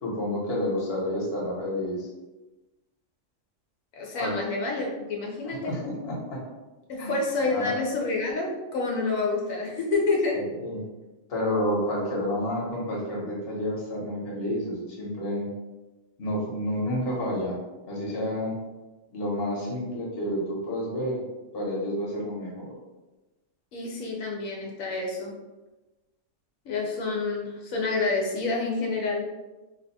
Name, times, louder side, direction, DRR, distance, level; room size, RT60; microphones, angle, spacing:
voice 1, 0.0-2.1 4.2-4.3 5.4-6.4 7.0-7.2 7.5-7.8 10.3-10.8 11.3-15.5 16.2-17.6 17.8-18.6 19.1-21.2 21.5-22.7, left 1 dB, 50° left, -3 dB, 1.2 m, -30 dB
voice 2, 4.0-5.7 6.9-10.4 23.7-25.3 26.7-29.2, left 3 dB, 90° left, -1 dB, 1.1 m, -28 dB
2.9 x 2.2 x 4.1 m, 1.1 s
omnidirectional pair, 1.4 m